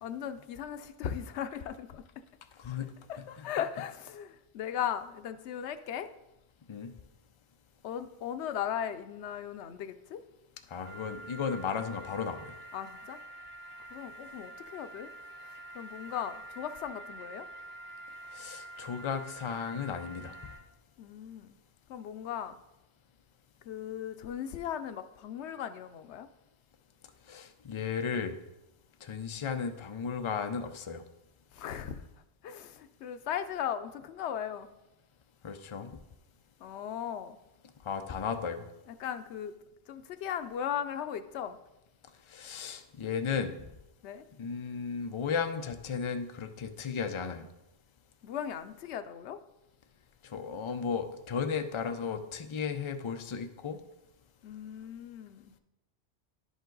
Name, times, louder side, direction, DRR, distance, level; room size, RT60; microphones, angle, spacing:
voice 1, 0.0-2.0 3.1-6.1 7.8-10.2 12.7-13.2 13.9-15.1 15.4-17.5 21.0-21.6 21.9-22.6 23.6-26.3 31.5-32.0 32.4-34.7 36.6-37.4 38.9-39.5 39.9-41.6 44.0-44.2 48.2-49.4 54.4-55.5, left 9 dB, 90° left, 0.9 m, -37 dB
voice 2, 2.6-2.9 3.4-3.5 6.7-6.9 10.7-12.5 18.3-20.3 27.3-28.4 29.0-31.0 35.4-35.9 37.8-38.7 42.3-43.6 44.4-47.5 50.2-53.8, left 6 dB, 40° left, 0.5 m, -35 dB
sound 1, 10.8-20.6, right 1 dB, 20° left, 1.7 m, -47 dB
10.5 x 5.2 x 3.8 m
omnidirectional pair, 1.1 m